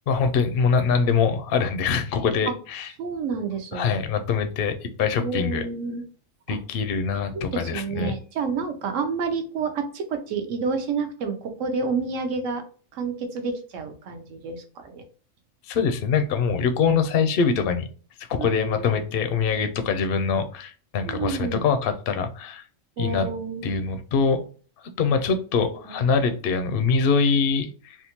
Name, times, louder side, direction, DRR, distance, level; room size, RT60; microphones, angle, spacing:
voice 1, 0.1-2.9 3.7-5.7 6.5-8.2 15.7-17.9 18.3-22.6 23.0-23.3 23.6-24.4 25.0-28.0, left 5 dB, 65° left, 8 dB, 0.6 m, -23 dB
voice 2, 3.0-4.0 5.2-6.0 6.5-6.6 7.3-12.6 12.9-15.0 18.4-19.0 21.0-21.6 23.0-23.8 25.6-26.0, right 5 dB, 75° right, 6 dB, 1.0 m, -29 dB
3.5 x 2.3 x 2.8 m, 0.40 s
omnidirectional pair, 1.3 m